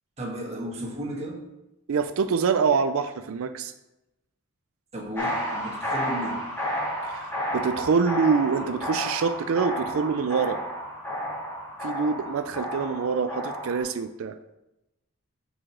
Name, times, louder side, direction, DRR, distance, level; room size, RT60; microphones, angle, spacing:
voice 1, 0.2-1.4 4.9-6.4, equal, 30° right, -2 dB, 1.3 m, -34 dB
voice 2, 1.9-3.7 7.1-10.6 11.8-14.4, right 5 dB, 70° right, 9 dB, 0.4 m, -25 dB
sound 1, 5.2-13.8, equal, 10° left, 2.2 m, -32 dB
6.2 x 4.9 x 6.0 m, 0.95 s
head